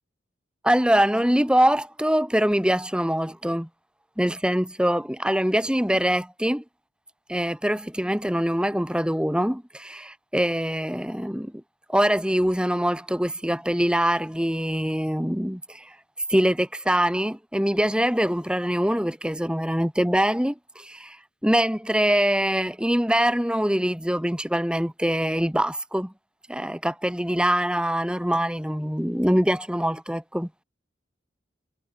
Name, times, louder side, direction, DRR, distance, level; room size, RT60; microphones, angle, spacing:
voice 1, 0.6-3.7 4.2-6.6 7.3-11.5 11.9-15.9 16.3-21.2 21.4-26.1 26.5-30.5, equal, 5° right, 2.2 m, -23 dB
head